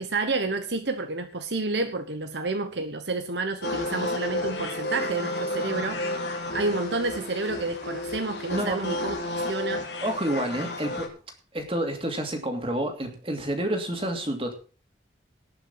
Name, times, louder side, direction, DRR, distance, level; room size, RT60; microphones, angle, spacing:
voice 1, 0.0-6.0 6.5-9.2 9.4-9.9, right 3 dB, 75° right, 7 dB, 1.2 m, -29 dB
sound 1, 3.6-11.1, left 1 dB, 70° left, 3.0 m, -31 dB
voice 2, 8.5-8.8 10.0-11.1 11.5-14.5, right 1 dB, 30° right, 4 dB, 2.7 m, -29 dB
19.0 x 6.3 x 5.7 m, 0.38 s
head